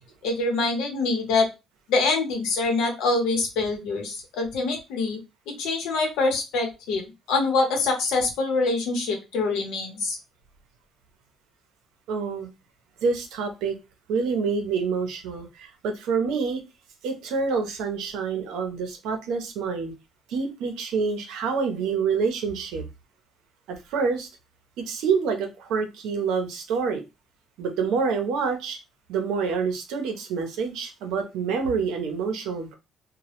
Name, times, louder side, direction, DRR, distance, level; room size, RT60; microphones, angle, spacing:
voice 1, 0.2-1.5 1.9-5.2 5.5-7.0 7.3-10.2, left 3 dB, 90° left, 0.8 m, -25 dB
voice 2, 12.1-12.5 13.0-13.8 14.1-16.6 17.0-19.9 20.3-22.8 23.7-24.3 24.9-27.0 27.6-28.8 29.1-32.8, right 5 dB, 90° right, 0.6 m, -27 dB
2.1 x 2.0 x 2.8 m
cardioid pair, 135°, 0 cm